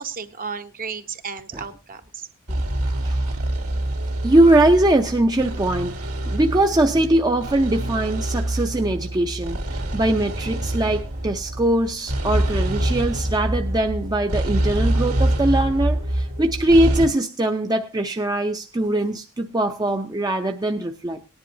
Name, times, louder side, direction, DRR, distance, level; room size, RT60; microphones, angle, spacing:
voice 1, 0.0-2.3 6.7-6.8 10.4-10.5 16.7-16.8, right 6 dB, 40° right, 8 dB, 0.9 m, -34 dB
sound 1, 2.5-17.1, right 1 dB, 90° right, 2.7 m, -25 dB
voice 2, 2.8-3.3 4.2-21.2, right 1 dB, 20° right, 4 dB, 0.6 m, -21 dB
18.5 x 10.5 x 2.7 m, 0.27 s
head